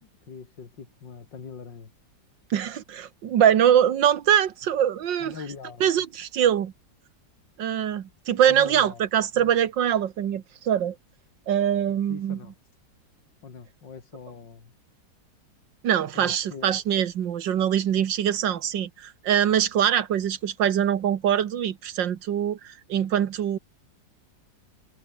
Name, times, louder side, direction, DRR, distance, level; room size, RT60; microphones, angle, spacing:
voice 1, 0.0-1.9 5.2-5.8 8.5-9.0 9.3-9.5 11.9-12.5 13.4-14.7 16.1-16.8, left 5 dB, 80° left, 3.3 m, -42 dB
voice 2, 2.5-5.3 5.8-6.7 7.6-11.0 11.5-12.4 15.8-23.6, right 9 dB, 80° right, 1.9 m, -23 dB
omnidirectional pair, 1.9 m